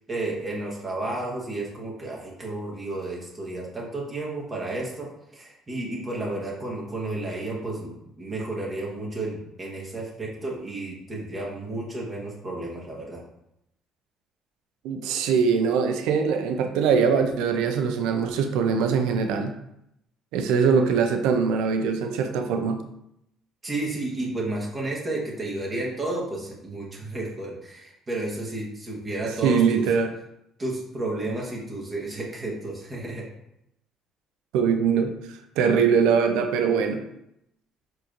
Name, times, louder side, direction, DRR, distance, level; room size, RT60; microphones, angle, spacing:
voice 1, 0.1-5.1 5.3-13.2 23.6-29.9 30.6-33.3, right 2 dB, 35° right, -3 dB, 1.3 m, -32 dB
voice 2, 14.8-19.5 20.3-22.8 29.4-30.1 34.5-37.0, right 6 dB, 80° right, 5 dB, 0.5 m, -22 dB
4.6 x 3.0 x 2.5 m, 0.80 s
supercardioid pair, 75°, 0 cm